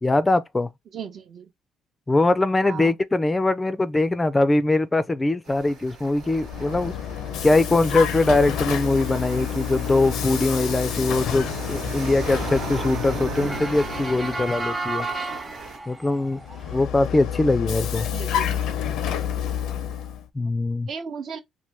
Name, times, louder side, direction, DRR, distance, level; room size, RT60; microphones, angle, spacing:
voice 1, 0.0-0.7 2.1-6.9 7.4-15.1 15.9-16.4 16.7-18.1 20.4-20.9, left 2 dB, 20° left, 0.4 m, -22 dB
voice 2, 0.9-1.5 2.6-3.0 18.1-18.7 20.4-20.5 20.9-21.4, right 6 dB, 60° right, 0.7 m, -36 dB
sound 1, 5.4-15.8, right 5 dB, 80° right, 1.2 m, -37 dB
Vehicle, 6.2-14.7 16.4-20.3, left 9 dB, 80° left, 0.5 m, -29 dB
Motor vehicle (road) / Siren, 9.6-16.8, right 2 dB, 15° right, 0.7 m, -35 dB
2.9 x 2.2 x 3.3 m
cardioid pair, 80°, 0 cm